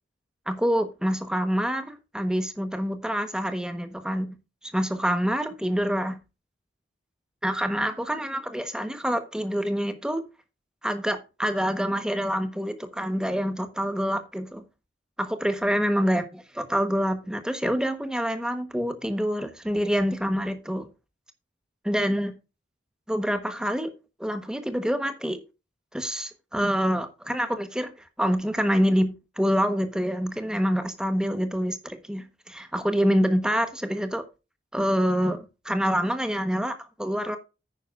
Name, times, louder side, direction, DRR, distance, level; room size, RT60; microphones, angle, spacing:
voice 1, 0.5-4.3 4.7-6.2 7.4-10.2 10.8-14.6 15.2-20.9 21.8-22.3 23.1-23.9 24.2-25.4 25.9-27.9 28.2-34.2 34.7-37.4, equal, 5° right, 1.2 m, -26 dB
9.9 x 9.6 x 2.5 m
head